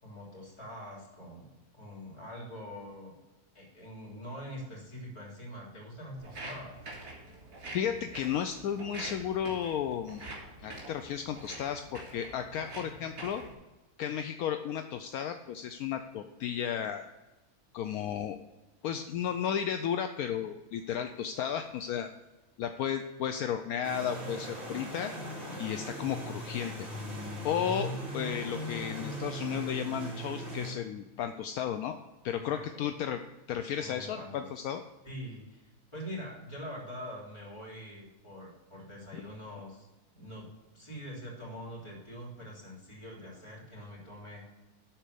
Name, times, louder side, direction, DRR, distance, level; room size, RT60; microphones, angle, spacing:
voice 1, 0.0-3.1 3.5-6.8 32.5-32.9 33.8-34.4 35.0-40.5 40.7-44.5, equal, 20° left, -5 dB, 3.2 m, -44 dB
Walk footsteps, 6.2-13.5, right 2 dB, 75° right, 3.6 m, -45 dB
voice 2, 7.7-10.3 10.6-13.4 14.0-17.1 17.7-18.4 18.8-22.1 22.6-25.1 25.6-26.9 27.4-32.0 32.2-33.2 33.5-34.8, left 9 dB, 75° left, 7 dB, 1.0 m, -33 dB
sound 1, 23.8-30.7, equal, 35° right, 3.2 m, -39 dB
11.5 x 4.4 x 6.8 m, 1.1 s
omnidirectional pair, 1.6 m